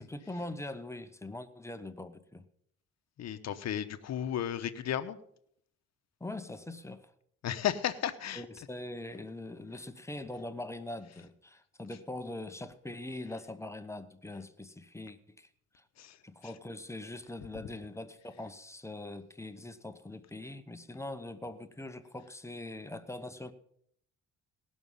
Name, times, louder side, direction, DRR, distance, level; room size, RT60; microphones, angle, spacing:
voice 1, 0.0-2.4 6.2-7.1 8.3-15.5 15.7-15.8 16.2-23.5, left 2 dB, 10° left, 0.9 m, -42 dB
voice 2, 3.2-5.2 7.4-8.4 16.0-16.2, left 10 dB, 60° left, 0.9 m, -34 dB
18.0 x 6.3 x 5.5 m
cardioid pair, 90°, 30 cm